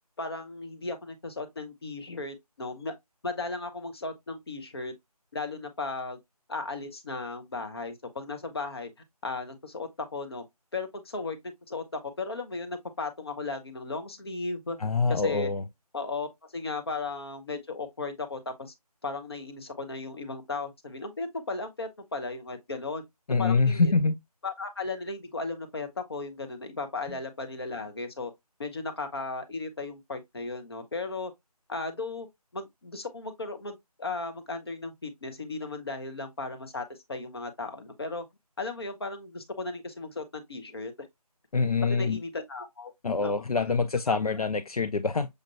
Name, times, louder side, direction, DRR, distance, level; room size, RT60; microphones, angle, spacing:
voice 1, 0.2-2.9 3.2-4.9 5.3-6.2 6.5-8.9 9.2-10.4 10.7-11.8 12.2-14.8 15.1-15.5 15.9-18.7 19.0-23.0 23.4-23.9 24.4-28.3 28.6-31.3 31.7-32.3 32.5-38.2 38.6-41.1 41.8-42.9 43.2-43.4 44.1-44.2, left 3 dB, 40° left, 0.9 m, -36 dB
voice 2, 14.8-15.6 23.3-24.2 27.1-27.2 41.5-42.2 43.0-45.3, left 4 dB, 65° left, 0.5 m, -25 dB
6.5 x 2.4 x 2.8 m
figure-of-eight pair, 160°, 20 cm